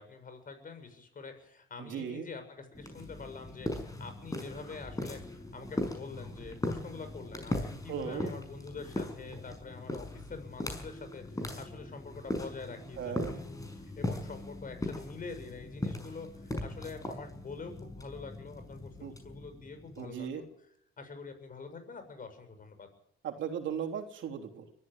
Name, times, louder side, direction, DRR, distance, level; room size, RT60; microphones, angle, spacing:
voice 1, 0.0-13.7 14.0-20.5 21.0-22.9, left 4 dB, 45° left, 8 dB, 7.0 m, -46 dB
voice 2, 1.8-2.3 7.9-8.3 13.0-13.3 19.0-19.1 20.0-20.4 23.2-24.7, right 8 dB, 75° right, 4 dB, 3.5 m, -37 dB
sound 1, 2.7-20.3, left 1 dB, 15° left, 6.2 m, -39 dB
22.5 x 14.0 x 8.9 m, 0.73 s
cardioid pair, 90°, 20 cm